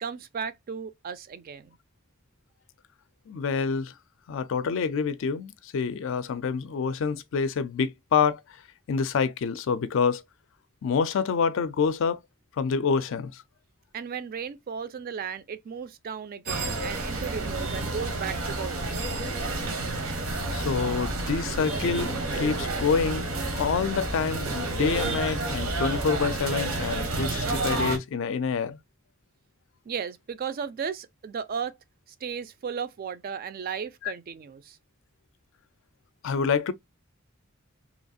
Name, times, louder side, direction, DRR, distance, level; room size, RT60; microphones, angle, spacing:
voice 1, 0.0-1.8 13.9-18.9 29.9-31.8 32.2-34.8, right 6 dB, 45° right, 0.3 m, -35 dB
voice 2, 3.3-3.9 4.3-8.4 8.9-10.2 10.8-12.2 12.6-13.4 20.5-23.3 23.5-28.8 34.0-34.1 36.2-36.7, left 5 dB, 65° left, 0.4 m, -27 dB
sound 1, 16.5-28.0, right 2 dB, 85° right, 0.9 m, -30 dB
2.9 x 2.4 x 2.5 m
head